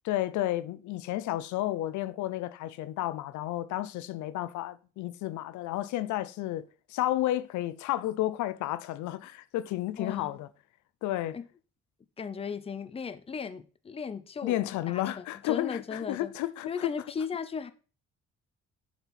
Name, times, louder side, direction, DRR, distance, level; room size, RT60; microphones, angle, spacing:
voice 1, 0.0-10.5 11.0-11.4 14.4-16.9, left 14 dB, 85° left, 0.5 m, -32 dB
voice 2, 10.0-10.4 11.3-11.4 12.2-14.6 14.9-16.3 16.7-17.7, left 6 dB, 20° left, 0.5 m, -36 dB
6.7 x 4.5 x 4.1 m
cardioid pair, 110°, 29 cm